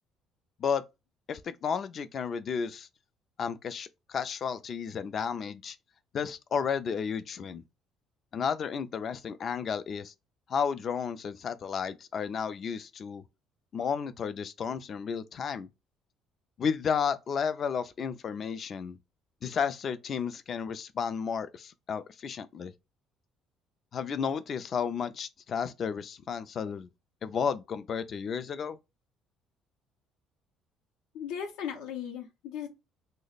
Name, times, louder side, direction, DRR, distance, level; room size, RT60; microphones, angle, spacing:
voice 1, 1.3-2.9 3.4-5.8 6.1-7.6 8.3-10.1 10.5-13.2 13.7-15.7 16.6-19.0 19.4-22.7 23.9-26.9 27.2-28.8, left 6 dB, 50° left, 0.4 m, -32 dB
voice 2, 31.1-32.7, left 8 dB, 85° left, 0.7 m, -37 dB
2.9 x 2.1 x 4.0 m
cardioid pair, 95°, 0 cm